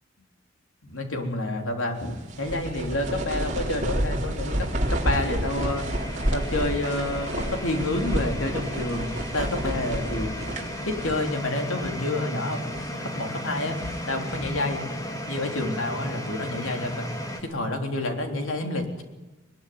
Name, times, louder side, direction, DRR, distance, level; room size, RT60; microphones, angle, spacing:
voice 1, 0.8-5.9 6.3-10.3 10.9-12.6 12.9-14.8 15.3-17.1 17.4-19.0, left 2 dB, 90° left, 4 dB, 3.7 m, -29 dB
sound 1, 2.0-11.5 11.8-11.9 12.5-13.0 13.5-14.6, right 1 dB, 35° right, 3.6 m, -30 dB
sound 2, 2.7-17.4, left 1 dB, 15° left, 2.5 m, -36 dB
22.0 x 21.5 x 9.6 m, 1.1 s
head